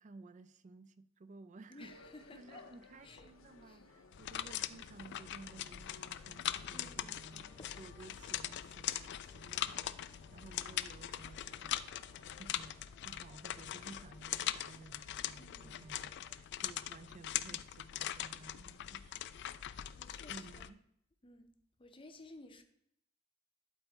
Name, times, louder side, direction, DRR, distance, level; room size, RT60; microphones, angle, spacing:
voice 1, 0.0-1.9 2.3-7.5 7.8-11.8 12.3-19.5 20.3-20.8, right 3 dB, 40° right, 0.4 m, -55 dB
voice 2, 1.7-2.6 3.0-3.3 3.7-3.8 6.7-7.7 15.3-15.7 20.0-20.8 21.2-21.5 21.8-22.6, left 2 dB, 25° left, 0.7 m, -55 dB
sound 1, 1.8-12.4, left 3 dB, 75° left, 0.8 m, -60 dB
sound 2, 4.1-20.7, left 12 dB, 60° left, 0.3 m, -41 dB
sound 3, 7.2-16.4, right 1 dB, 20° right, 0.9 m, -67 dB
12.0 x 4.1 x 3.5 m
head